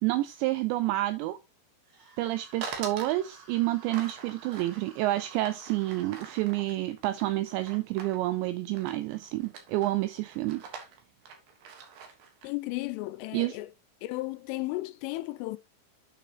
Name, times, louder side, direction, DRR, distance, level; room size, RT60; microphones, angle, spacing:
voice 1, 0.0-1.4 2.2-10.6 13.3-13.5, right 17 dB, 90° right, 2.5 m, -29 dB
sound 1, 1.8-6.5, right 4 dB, 45° right, 4.3 m, -54 dB
sound 2, 2.6-3.2 3.9-8.2 8.7-9.1 9.4-9.9 10.3-12.5, right 6 dB, 60° right, 2.5 m, -43 dB
voice 2, 12.4-13.7 14.0-15.6, left 19 dB, 85° left, 3.1 m, -34 dB
8.9 x 6.6 x 2.9 m
omnidirectional pair, 5.6 m